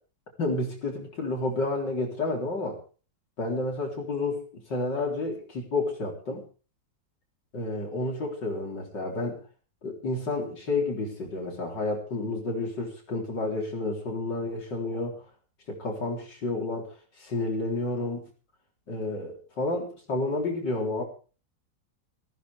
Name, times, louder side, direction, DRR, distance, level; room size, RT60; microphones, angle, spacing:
voice 1, 0.4-2.8 3.4-6.4 7.5-9.4 9.8-15.2 15.7-18.3 18.9-21.0, left 2 dB, 70° left, 1 dB, 4.4 m, -30 dB
18.5 x 15.0 x 3.5 m, 0.36 s
omnidirectional pair, 2.0 m